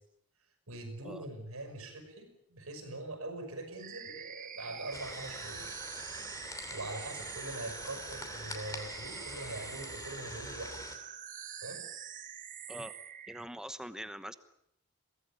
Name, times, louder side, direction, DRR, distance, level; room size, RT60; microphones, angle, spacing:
voice 1, 0.7-5.7 6.7-10.7 11.6-11.8, right 2 dB, 80° right, 8 dB, 5.8 m, -43 dB
sound 1, 3.8-13.4, right 9 dB, 35° right, 1.1 m, -45 dB
sound 2, 4.9-11.0, left 3 dB, 15° left, 2.7 m, -45 dB
voice 2, 13.3-14.3, equal, 5° right, 11 dB, 1.0 m, -43 dB
23.0 x 18.0 x 8.9 m, 0.79 s
head